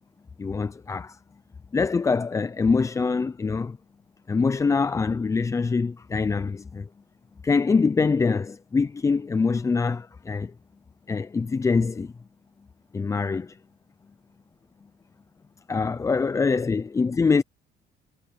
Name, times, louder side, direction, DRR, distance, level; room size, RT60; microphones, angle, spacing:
voice 1, 0.4-1.2 1.7-3.8 4.3-6.9 7.4-10.5 11.1-12.1 12.9-13.6 15.7-17.4, left 4 dB, 20° left, 0.4 m, -24 dB
cardioid pair, 110°, 17 cm